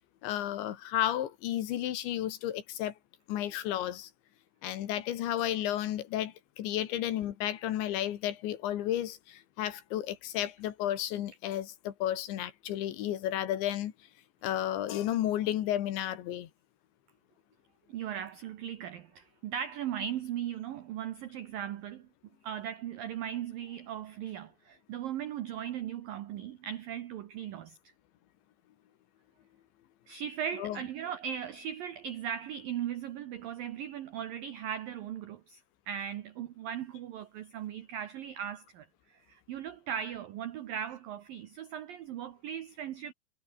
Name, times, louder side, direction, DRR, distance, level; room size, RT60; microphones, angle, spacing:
voice 1, 0.2-2.9 3.3-4.1 4.6-13.9 14.4-16.5 30.6-30.8, left 12 dB, 70° left, 3.7 m, -32 dB
voice 2, 17.9-22.1 22.4-27.8 30.1-43.1, right 9 dB, 80° right, 2.0 m, -38 dB
omnidirectional pair, 5.9 m